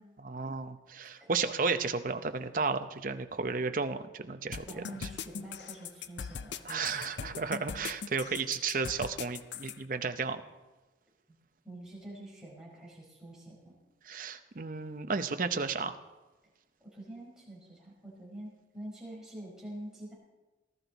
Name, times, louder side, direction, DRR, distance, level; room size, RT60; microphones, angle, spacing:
voice 1, 0.2-4.8 6.7-10.4 14.1-15.9, right 4 dB, 45° right, 9 dB, 0.7 m, -33 dB
sound 1, 4.5-9.8, left 6 dB, 70° left, 0.5 m, -40 dB
voice 2, 4.6-7.4 11.6-13.7 16.9-20.1, right 1 dB, 5° right, -6 dB, 5.1 m, -46 dB
19.0 x 13.0 x 4.0 m, 1.2 s
head